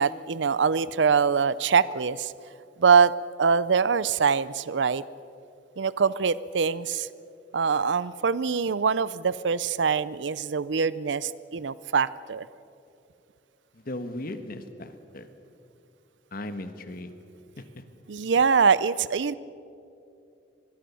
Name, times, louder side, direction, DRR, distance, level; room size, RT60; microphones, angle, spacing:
voice 1, 0.0-2.3 2.8-3.1 3.4-5.0 5.8-7.1 7.5-12.5 18.1-19.4, right 6 dB, 80° right, 18 dB, 0.6 m, -23 dB
voice 2, 13.7-15.3 16.3-17.1 17.6-17.7, left 1 dB, 55° left, 9 dB, 1.4 m, -37 dB
23.5 x 22.0 x 7.0 m, 2.7 s
head